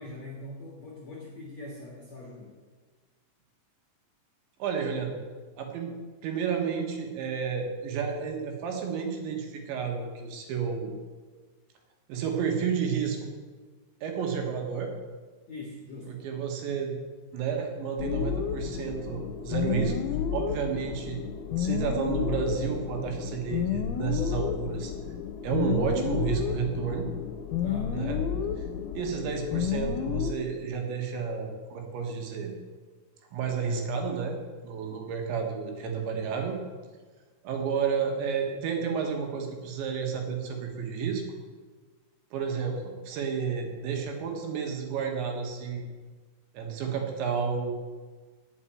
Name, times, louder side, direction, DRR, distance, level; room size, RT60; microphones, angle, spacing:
voice 1, 0.0-2.6 15.5-16.2 27.6-28.0, left 1 dB, 65° left, -1 dB, 1.8 m, -42 dB
voice 2, 4.6-5.1 5.6-6.0 6.2-10.9 12.1-13.3 14.0-14.9 16.2-17.0 17.3-21.2 21.6-24.9 25.4-27.1 27.9-28.2 28.6-28.7 28.9-32.5 33.3-34.4 34.6-36.6 37.4-41.2 42.3-45.8 46.6-47.8, right 6 dB, 75° right, 2 dB, 3.7 m, -31 dB
sound 1, 18.0-30.3, left 8 dB, 90° left, 3.1 m, -31 dB
9.1 x 8.5 x 8.8 m, 1.4 s
omnidirectional pair, 5.5 m